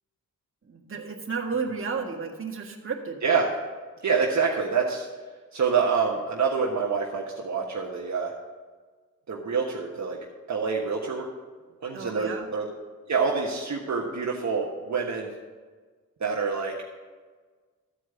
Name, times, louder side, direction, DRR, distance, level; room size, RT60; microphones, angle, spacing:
voice 1, 0.7-3.2 11.9-12.5, right 5 dB, 35° right, 0 dB, 1.7 m, -32 dB
voice 2, 4.0-5.1 5.5-8.3 9.3-10.2 10.5-11.3 11.8-12.7 13.1-15.3 16.2-16.8, right 5 dB, 55° right, -1 dB, 1.4 m, -26 dB
13.5 x 4.7 x 7.9 m, 1.4 s
cardioid pair, 75°, 35 cm